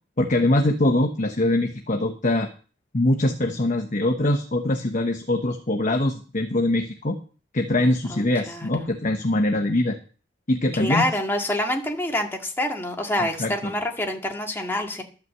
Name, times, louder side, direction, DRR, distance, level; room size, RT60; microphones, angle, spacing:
voice 1, 0.2-2.5 2.9-7.2 7.5-10.0 10.5-11.1 13.4-13.7, left 1 dB, 40° left, 4 dB, 1.0 m, -23 dB
voice 2, 8.1-8.7 10.8-15.0, left 1 dB, 10° left, 1 dB, 1.9 m, -26 dB
12.5 x 5.8 x 7.8 m, 0.37 s
head